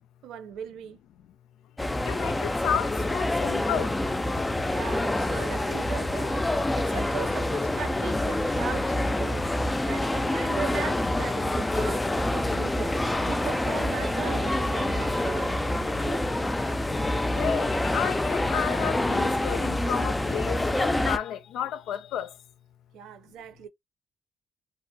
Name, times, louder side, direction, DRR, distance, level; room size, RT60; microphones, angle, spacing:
voice 1, 0.2-1.0 4.7-6.5 6.7-16.3 22.9-23.7, right 8 dB, 85° right, 0.7 m, -38 dB
sound 1, 1.8-21.2, left 1 dB, 15° left, 0.3 m, -27 dB
voice 2, 2.0-4.0 17.3-22.4, left 9 dB, 85° left, 0.4 m, -32 dB
sound 2, 12.9-18.0, right 3 dB, 25° right, 0.6 m, -41 dB
2.5 x 2.1 x 2.6 m
cardioid pair, 90°, 0 cm